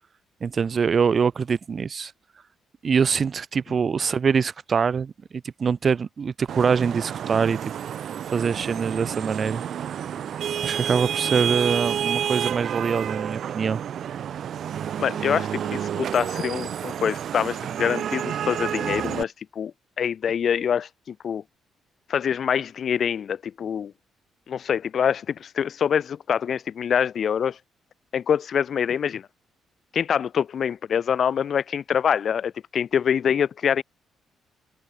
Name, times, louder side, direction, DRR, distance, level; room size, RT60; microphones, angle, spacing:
voice 1, 0.4-2.1 2.8-5.1 5.6-7.6 8.3-9.6 10.6-13.8, right 6 dB, 45° right, 0.7 m, -24 dB
Vehicle horn car horn honking / Traffic noise roadway noise, 6.5-19.2, right 9 dB, 65° right, 1.0 m, -29 dB
voice 2, 15.0-21.4 22.1-23.9 24.5-27.6 28.1-29.3 29.9-33.8, left 8 dB, 55° left, 0.6 m, -25 dB
cardioid pair, 90°, 0 cm